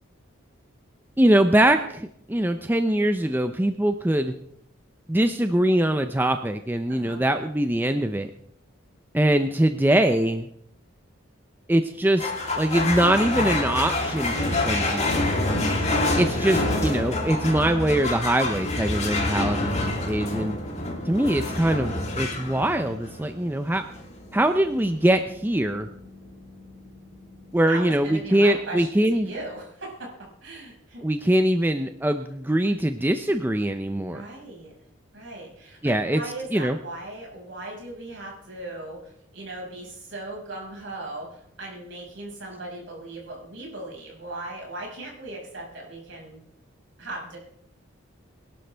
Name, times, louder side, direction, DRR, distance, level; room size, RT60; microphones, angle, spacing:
voice 1, 1.2-4.3 5.1-8.3 9.1-10.5 11.7-12.3 12.6-15.3 16.2-20.6 21.0-23.8 24.3-25.9 27.5-29.3 31.0-34.2 35.8-36.2 36.5-36.8, right 1 dB, 10° right, 8 dB, 0.5 m, -22 dB
voice 2, 6.9-7.2 15.6-16.0 27.7-30.1 30.4-31.3 34.1-34.7 35.1-46.4 47.0-47.4, right 2 dB, 65° right, -2 dB, 5.6 m, -38 dB
sound 1, 12.2-28.9, left 2 dB, 35° left, 2.7 m, -28 dB
22.0 x 11.5 x 3.4 m, 0.71 s
head